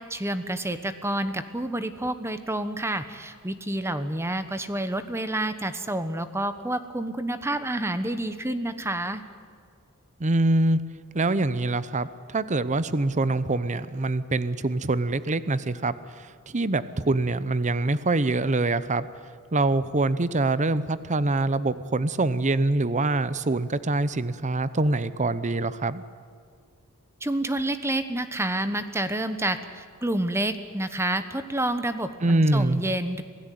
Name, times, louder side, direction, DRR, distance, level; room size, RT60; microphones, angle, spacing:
voice 1, 0.0-9.2 27.2-33.2, right 1 dB, 10° right, 10 dB, 1.1 m, -29 dB
voice 2, 10.2-10.8 11.1-19.1 19.5-26.0 32.2-32.8, right 2 dB, 35° right, 15 dB, 0.8 m, -24 dB
27.0 x 17.0 x 9.3 m, 2.2 s
head